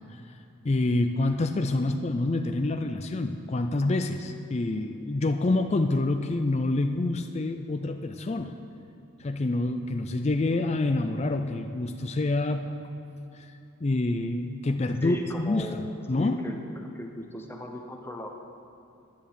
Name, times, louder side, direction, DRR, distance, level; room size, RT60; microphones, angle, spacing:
voice 1, 0.6-8.5 9.2-12.7 13.3-13.5 13.8-15.7 16.1-16.4, left 2 dB, 30° left, 7 dB, 0.4 m, -27 dB
voice 2, 15.0-15.8 16.2-18.3, left 1 dB, 10° left, 2 dB, 0.9 m, -38 dB
10.5 x 10.5 x 6.9 m, 2.7 s
head